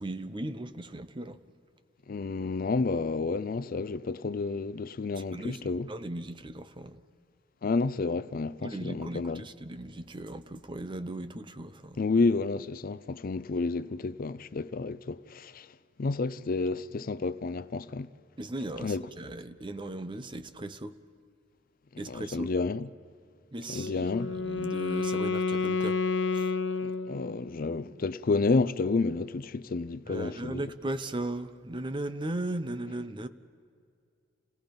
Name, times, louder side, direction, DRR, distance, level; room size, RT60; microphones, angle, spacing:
voice 1, 0.0-1.4 5.3-7.0 8.6-12.0 18.4-20.9 22.0-22.5 23.5-26.0 26.3-26.5 30.1-33.3, right 1 dB, 25° right, 0.7 m, -37 dB
voice 2, 2.1-5.9 7.6-9.4 12.0-15.7 16.0-18.1 18.8-19.1 22.1-22.9 23.7-24.3 27.1-30.6, left 3 dB, 50° left, 0.5 m, -30 dB
Wind instrument woodwind instrument, 23.7-27.6, left 4 dB, 75° left, 0.8 m, -30 dB
28.5 x 17.5 x 5.2 m
head